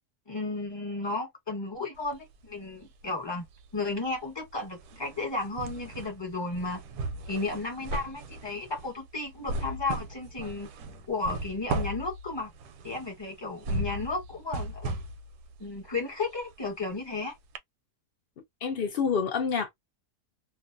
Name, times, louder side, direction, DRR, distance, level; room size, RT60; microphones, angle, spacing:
voice 1, 0.3-3.4 3.7-6.8 7.3-10.7 11.1-12.5 12.8-15.0 15.6-17.4, left 3 dB, 20° left, 1.1 m, -33 dB
sound 1, 2.0-3.1 3.4-17.2 17.6-17.7, right 2 dB, 85° right, 1.1 m, -37 dB
voice 2, 18.6-19.7, left 6 dB, 85° left, 0.5 m, -27 dB
2.5 x 2.3 x 2.5 m
omnidirectional pair, 1.6 m